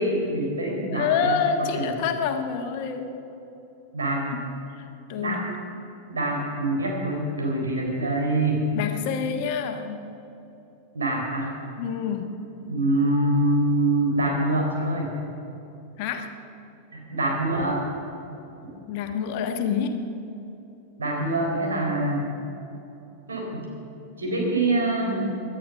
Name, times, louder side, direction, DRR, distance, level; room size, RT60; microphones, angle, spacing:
voice 1, 0.0-1.3 1.7-1.9 3.9-4.3 5.2-5.4 6.1-8.6 10.9-11.5 12.6-15.1 16.9-17.8 21.0-22.3 23.3-23.6 24.2-25.3, right 2 dB, 70° right, 0 dB, 4.1 m, -25 dB
voice 2, 0.9-3.1 4.3-4.4 4.7-5.4 8.7-10.1 11.8-12.5 16.0-16.3 18.9-20.1, left 6 dB, 45° left, 6 dB, 1.4 m, -27 dB
18.0 x 11.0 x 6.3 m, 2.9 s
figure-of-eight pair, 90°, 0 cm